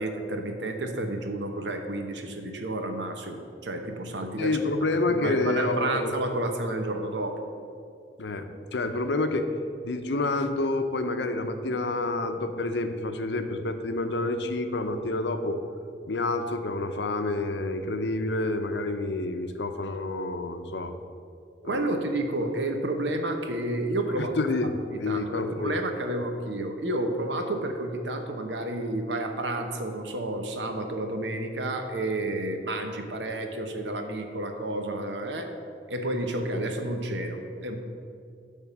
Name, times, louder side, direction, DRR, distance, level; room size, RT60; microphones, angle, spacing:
voice 1, 0.0-4.6 5.1-7.4 21.6-24.3 25.1-35.5 35.9-37.8, right 1 dB, 80° right, 5 dB, 1.0 m, -30 dB
voice 2, 4.4-6.1 8.2-8.4 8.7-9.5 9.8-15.6 16.1-20.9 21.6-21.9 24.2-25.7, left 2 dB, 75° left, 8 dB, 0.7 m, -28 dB
10.5 x 3.7 x 7.2 m, 2.4 s
head